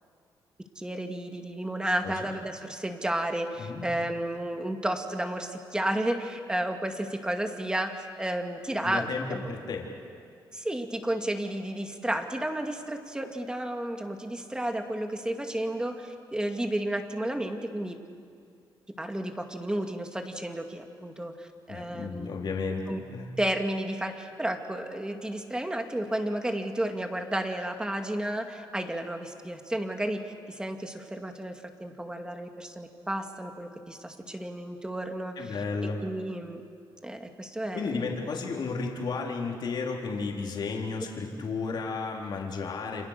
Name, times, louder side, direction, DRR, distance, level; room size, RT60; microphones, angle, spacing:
voice 1, 0.8-9.5 10.5-18.0 19.0-22.3 22.9-23.0 23.4-24.1 24.4-36.6 37.0-38.1, right 1 dB, 10° right, 5 dB, 2.3 m, -32 dB
voice 2, 3.6-3.9 8.8-9.9 21.7-23.3 35.4-36.0 37.7-43.1, left 4 dB, 60° left, -1 dB, 3.9 m, -33 dB
29.5 x 27.0 x 6.7 m, 2.3 s
cardioid pair, 115°, 9 cm